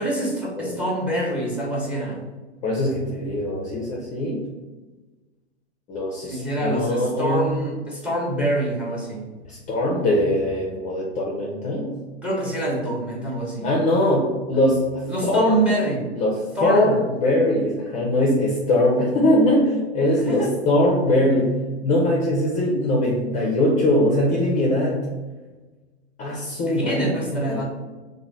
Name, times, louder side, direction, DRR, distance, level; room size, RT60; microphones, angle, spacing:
voice 1, 0.0-2.2 6.2-9.2 12.2-13.7 15.1-16.0 16.6-16.9 20.0-20.5 26.7-27.6, right 1 dB, 5° right, -3 dB, 1.1 m, -26 dB
voice 2, 2.6-4.4 5.9-7.5 9.5-11.9 13.6-15.6 16.2-25.1 26.2-27.6, left 1 dB, 25° left, -3 dB, 0.7 m, -21 dB
3.0 x 2.6 x 3.9 m, 1.2 s
hypercardioid pair, 110°, 34 cm